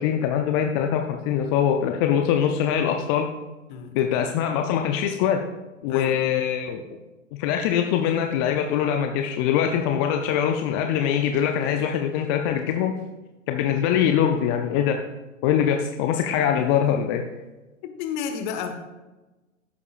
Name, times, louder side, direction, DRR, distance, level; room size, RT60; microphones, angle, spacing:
voice 1, 0.0-3.3 3.9-5.4 5.8-6.8 7.4-12.9 13.5-15.0 15.4-17.2, left 9 dB, 20° left, 4 dB, 0.4 m, -23 dB
voice 2, 5.9-6.2 17.8-18.9, left 7 dB, 35° left, 6 dB, 1.4 m, -31 dB
16.5 x 8.2 x 2.4 m, 1.1 s
figure-of-eight pair, 115°, 39 cm